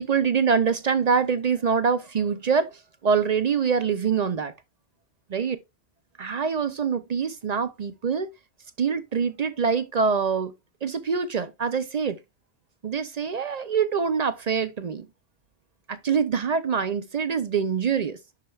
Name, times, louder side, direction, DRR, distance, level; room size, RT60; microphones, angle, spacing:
voice 1, 0.0-2.7 3.0-4.5 5.3-5.6 6.2-8.3 8.8-10.5 10.8-12.2 12.8-15.1 15.9-18.2, right 6 dB, 50° right, 0.5 m, -24 dB
11.0 x 4.4 x 2.3 m
omnidirectional pair, 1.1 m